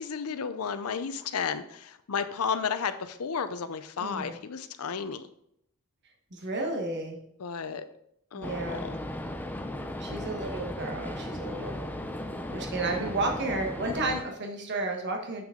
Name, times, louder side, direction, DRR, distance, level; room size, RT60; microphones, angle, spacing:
voice 1, 0.0-5.3 7.4-7.9 8.3-9.0, left 6 dB, 75° left, 11 dB, 0.6 m, -33 dB
voice 2, 4.0-4.4 6.3-7.2 8.3-8.9 10.0-11.8 12.5-15.5, right 2 dB, 50° right, 2 dB, 1.2 m, -32 dB
sound 1, 8.4-14.2, left 1 dB, 10° left, 0.5 m, -36 dB
7.3 x 6.0 x 3.7 m, 0.74 s
head